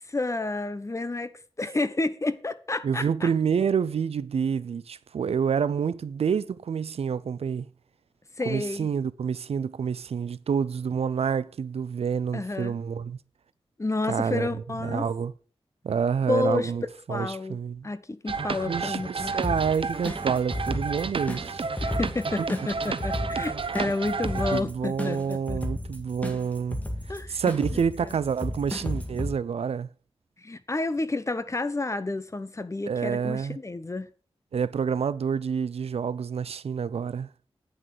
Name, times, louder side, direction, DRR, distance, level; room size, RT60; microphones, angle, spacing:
voice 1, 0.1-1.3 1.6-3.3 8.4-8.9 12.3-12.8 13.8-15.1 16.3-16.7 17.1-17.6 17.8-19.3 21.8-25.6 27.1-27.4 27.7-28.1 30.4-34.1, left 2 dB, 30° left, 1.0 m, -30 dB
voice 2, 2.8-7.7 8.5-13.2 14.1-14.5 14.8-15.3 15.8-16.8 17.1-17.9 18.6-21.7 22.4-22.5 24.5-26.8 27.1-29.9 32.9-33.6 34.5-37.3, right 7 dB, 85° right, 0.5 m, -28 dB
sound 1, 18.3-24.6, right 4 dB, 60° right, 0.8 m, -31 dB
sound 2, 19.4-29.3, left 1 dB, 15° left, 2.1 m, -34 dB
9.1 x 6.3 x 6.7 m
wide cardioid pair, 75°, 10 cm